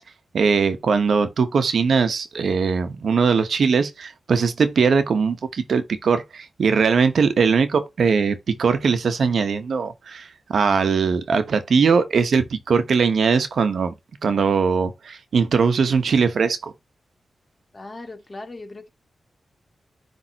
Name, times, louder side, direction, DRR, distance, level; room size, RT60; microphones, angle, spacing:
voice 1, 0.3-13.9 14.2-16.7, right 5 dB, 75° right, 1.0 m, -20 dB
voice 2, 17.7-18.9, left 2 dB, 35° left, 2.3 m, -38 dB
9.9 x 3.6 x 2.9 m
cardioid pair, 60°, 0 cm